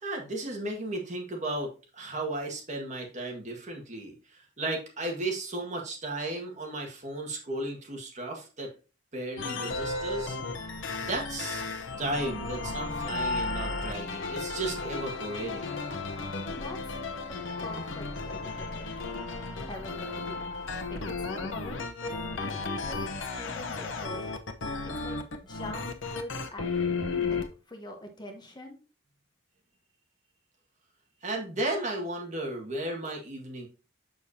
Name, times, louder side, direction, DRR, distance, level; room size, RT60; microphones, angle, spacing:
voice 1, 0.0-8.7 9.1-10.4 11.0-11.6 12.0-15.8 31.2-33.7, right 2 dB, 40° right, 1 dB, 1.7 m, -34 dB
sound 1, 9.4-27.5, left 3 dB, 80° left, 0.9 m, -34 dB
voice 2, 16.5-16.9 17.6-18.9 19.7-24.3 25.0-25.2 25.4-26.7 27.2-28.8, left 1 dB, 25° left, 4 dB, 1.1 m, -44 dB
6.8 x 6.2 x 2.8 m, 0.33 s
head